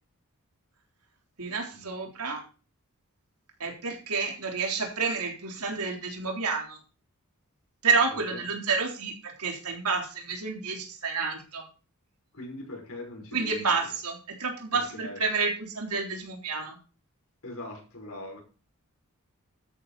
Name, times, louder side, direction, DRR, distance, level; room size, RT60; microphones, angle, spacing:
voice 1, 1.4-2.4 3.6-6.8 7.8-11.7 13.3-16.8, right 4 dB, 85° right, 2 dB, 3.8 m, -29 dB
voice 2, 12.3-13.8 14.7-15.2 17.4-18.4, left 1 dB, 70° left, 1 dB, 6.0 m, -41 dB
13.0 x 9.9 x 4.2 m, 0.35 s
head